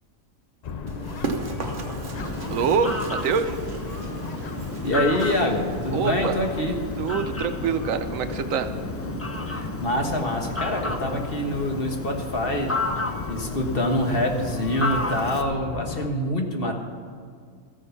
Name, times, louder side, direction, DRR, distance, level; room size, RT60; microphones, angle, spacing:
sound 1, 0.6-16.1, left 5 dB, 75° left, 0.3 m, -35 dB
Run, 0.9-11.4, right 4 dB, 40° right, 1.1 m, -38 dB
Fowl, 2.2-15.4, left 2 dB, 15° left, 0.5 m, -33 dB
voice 1, 2.5-3.5 5.9-6.4 7.0-8.7 16.6-16.7, right 6 dB, 70° right, 9 dB, 1.0 m, -25 dB
voice 2, 4.8-6.8 9.5-12.7 13.3-16.7, left 1 dB, 45° left, 2 dB, 1.5 m, -25 dB
14.0 x 9.6 x 5.8 m, 2.1 s
omnidirectional pair, 1.5 m